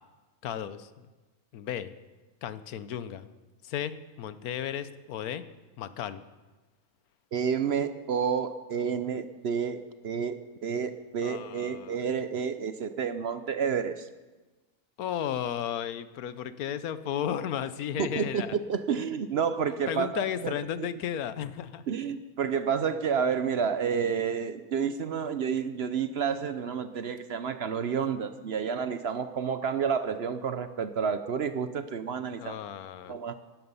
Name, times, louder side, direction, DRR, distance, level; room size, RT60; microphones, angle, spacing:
voice 1, 0.4-1.1 1.5-1.9 2.4-3.3 3.6-5.4 5.8-6.2 11.2-12.0 15.0-18.5 19.9-21.8 32.4-33.2, left 9 dB, 90° left, 14 dB, 1.2 m, -34 dB
voice 2, 7.3-14.1 18.0-20.5 20.8-20.9 21.9-32.6 33.1-33.3, right 6 dB, 55° right, 11 dB, 0.8 m, -30 dB
16.5 x 12.0 x 5.5 m, 1.2 s
omnidirectional pair, 1.5 m